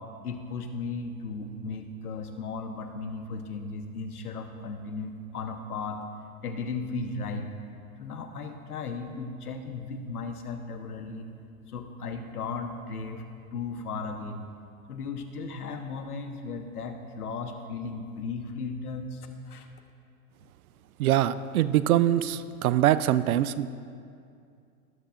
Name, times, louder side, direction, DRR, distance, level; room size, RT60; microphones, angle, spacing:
voice 1, 0.0-6.0 6.4-7.5 8.0-11.3 11.7-13.2 13.5-14.5 14.9-19.7, left 4 dB, 80° left, 6 dB, 1.1 m, -36 dB
voice 2, 21.0-23.7, right 12 dB, 70° right, 15 dB, 0.5 m, -23 dB
18.0 x 7.7 x 2.5 m, 2.4 s
hypercardioid pair, 110°, 45 cm